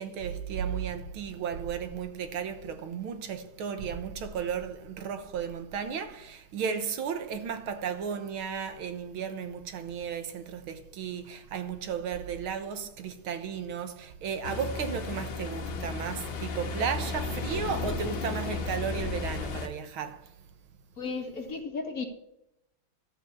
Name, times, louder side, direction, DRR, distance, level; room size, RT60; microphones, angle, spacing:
voice 1, 0.0-20.4, right 7 dB, 70° right, 1.9 m, -34 dB
Ocean, 14.4-19.7, left 3 dB, 65° left, 2.0 m, -34 dB
voice 2, 21.0-22.1, left 4 dB, 45° left, 1.8 m, -34 dB
12.5 x 7.3 x 7.1 m
omnidirectional pair, 2.4 m